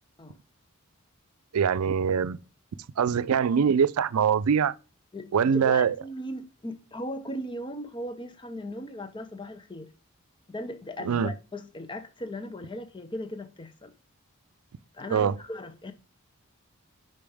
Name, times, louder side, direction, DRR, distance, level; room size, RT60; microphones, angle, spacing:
voice 1, 1.5-2.4 3.0-4.7 5.3-6.0 11.0-11.3 15.1-15.3, right 7 dB, 90° right, 0.4 m, -23 dB
voice 2, 5.1-9.9 10.5-13.9 14.9-15.9, left 1 dB, 20° left, 0.6 m, -37 dB
5.3 x 5.1 x 3.4 m
head